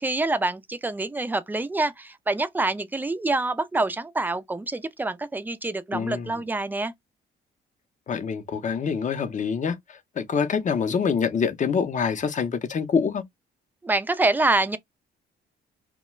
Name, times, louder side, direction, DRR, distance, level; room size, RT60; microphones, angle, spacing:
voice 1, 0.0-6.9 13.8-14.8, right 2 dB, 10° right, 0.3 m, -26 dB
voice 2, 5.9-6.3 8.1-9.8 10.2-13.2, left 6 dB, 40° left, 0.6 m, -25 dB
2.3 x 2.1 x 2.9 m
cardioid pair, 90°, 20 cm